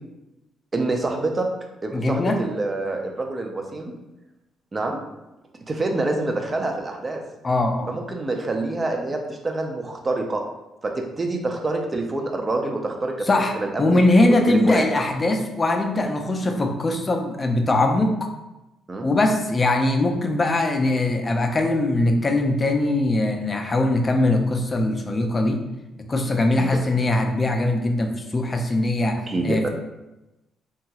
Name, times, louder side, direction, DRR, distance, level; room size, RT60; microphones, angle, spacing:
voice 1, 0.7-1.5 1.8-3.9 4.7-5.0 5.7-7.2 7.9-10.4 10.8-13.3 13.6-14.0 14.5-14.9 18.9-19.1 26.6-26.8 29.3-29.7, right 2 dB, 30° right, 3 dB, 0.5 m, -26 dB
voice 2, 1.9-2.4 7.4-7.9 13.3-18.3 19.0-25.6 26.1-29.7, left 2 dB, 30° left, 4 dB, 0.4 m, -21 dB
2.9 x 2.3 x 2.8 m, 0.96 s
cardioid pair, 90°, 0 cm